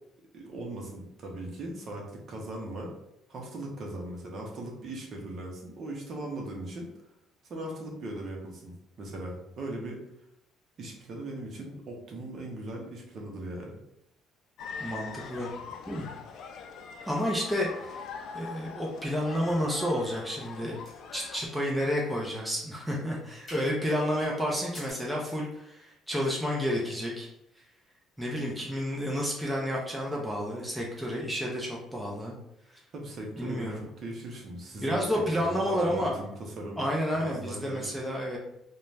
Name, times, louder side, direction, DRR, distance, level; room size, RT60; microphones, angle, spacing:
voice 1, 0.3-2.9 3.3-6.9 7.4-10.0 10.8-13.8 32.9-35.1 35.4-36.9 37.2-38.0, right 1 dB, 45° right, -1 dB, 0.7 m, -39 dB
sound 1, 14.6-21.5, left 5 dB, 60° left, 0.3 m, -42 dB
voice 2, 14.8-15.5 15.9-16.1 17.1-18.0 18.3-20.8 21.1-27.3 28.2-32.3 33.4-33.8 34.8-36.2 36.8-38.4, equal, 5° right, -3 dB, 0.5 m, -30 dB
sound 2, 19.8-20.5 20.8-22.0 22.4-22.6 22.9-23.0 23.5-23.8 24.6-24.9, left 1 dB, 25° left, 1.5 m, -49 dB
2.5 x 2.2 x 3.2 m, 0.81 s
cardioid pair, 130°, 0 cm